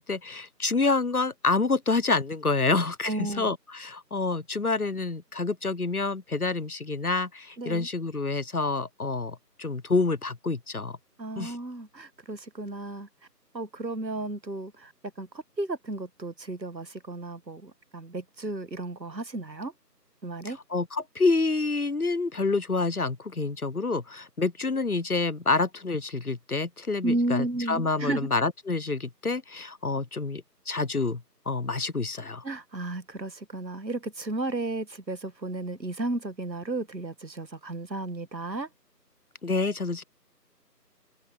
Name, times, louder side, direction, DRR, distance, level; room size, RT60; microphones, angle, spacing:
voice 1, 0.0-11.0 11.4-11.6 20.4-32.4 39.4-40.0, left 3 dB, 60° left, 0.7 m, -28 dB
voice 2, 3.0-3.5 7.6-7.9 11.2-13.1 13.5-14.9 15.2-19.7 20.2-20.6 27.0-28.3 32.4-38.7, right 2 dB, 85° right, 1.5 m, -33 dB
figure-of-eight pair, 175°, 50 cm